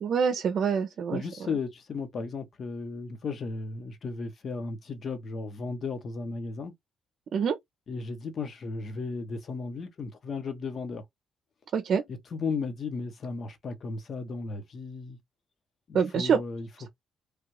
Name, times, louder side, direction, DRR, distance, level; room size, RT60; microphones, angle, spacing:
voice 1, 0.0-1.2 7.3-7.6 11.7-12.0 15.9-16.4, right 6 dB, 60° right, 0.6 m, -25 dB
voice 2, 1.1-6.7 7.9-11.0 12.1-15.2 15.9-16.9, left 4 dB, 50° left, 0.9 m, -35 dB
3.3 x 2.4 x 3.0 m
cardioid pair, 90°, 0 cm